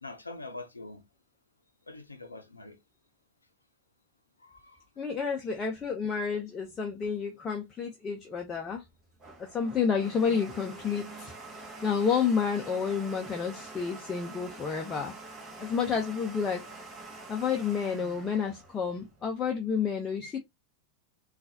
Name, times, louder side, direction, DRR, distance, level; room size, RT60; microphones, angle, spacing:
voice 1, 0.0-1.0 1.9-2.8 4.4-4.8, left 2 dB, 80° left, 0.6 m, -44 dB
voice 2, 5.0-8.8 9.4-15.1 15.6-16.7 17.3-20.4, left 6 dB, 20° left, 0.6 m, -30 dB
Domestic sounds home sounds, 8.8-19.5, right 2 dB, 20° right, 1.3 m, -46 dB
3.9 x 2.4 x 2.6 m
figure-of-eight pair, 90°, 0 cm